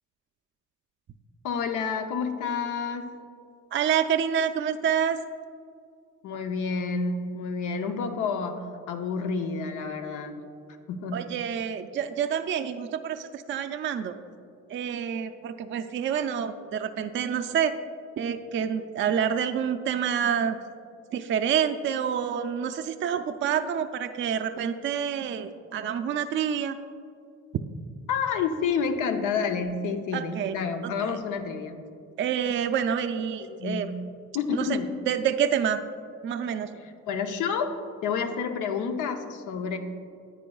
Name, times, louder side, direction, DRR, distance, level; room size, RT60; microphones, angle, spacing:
voice 1, 1.4-3.1 6.2-10.4 10.9-11.2 28.1-31.8 33.4-33.9 34.3-34.9 37.1-37.7 38.0-39.8, left 5 dB, 85° left, 6 dB, 0.7 m, -29 dB
voice 2, 3.7-5.2 11.1-14.2 14.7-17.7 18.2-20.6 21.1-26.8 30.1-30.5 30.8-31.2 32.2-33.9 34.5-34.8 35.1-35.8 36.2-36.7, right 8 dB, 40° right, 8 dB, 0.4 m, -28 dB
9.9 x 8.3 x 2.3 m, 2.4 s
cardioid pair, 90°, 30 cm